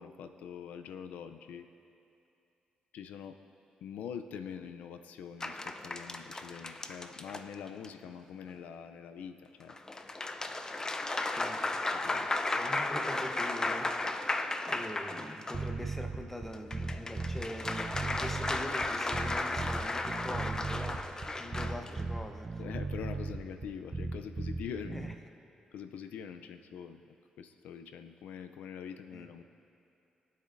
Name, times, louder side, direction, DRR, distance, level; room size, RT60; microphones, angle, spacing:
voice 1, 0.0-1.7 2.9-3.3 3.8-9.8 11.9-12.4 22.6-25.2 25.7-27.0 27.4-29.4, left 7 dB, 85° left, 8 dB, 0.5 m, -44 dB
sound 1, 5.4-7.9 9.7-15.7 16.5-21.9, left 2 dB, 25° left, 0.6 m, -35 dB
voice 2, 11.3-12.0 12.5-21.1 21.4-22.6 24.9-25.1 29.1-29.3, equal, 10° left, 5 dB, 1.0 m, -43 dB
sound 2, 15.5-25.1, right 3 dB, 30° right, 0.6 m, -37 dB
22.5 x 8.3 x 2.6 m, 2.7 s
cardioid pair, 75°, 3 cm